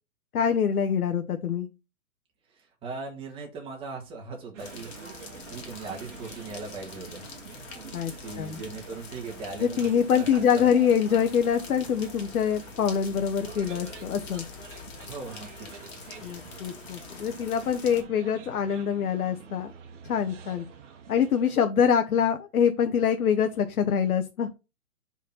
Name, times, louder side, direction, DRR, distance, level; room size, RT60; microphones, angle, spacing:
voice 1, 0.3-1.7 7.9-8.6 9.6-14.4 16.2-19.7 20.1-20.6 21.1-24.5, left 8 dB, 80° left, 8 dB, 1.0 m, -25 dB
voice 2, 2.8-5.1 5.5-7.2 8.2-10.7 15.1-15.7, right 4 dB, 10° right, 1 dB, 1.6 m, -39 dB
sound 1, 4.5-21.5, right 7 dB, 55° right, 1.4 m, -47 dB
sound 2, 4.6-18.0, left 5 dB, 45° left, 2.4 m, -45 dB
5.0 x 4.1 x 5.6 m, 0.28 s
hypercardioid pair, 155°, 43 cm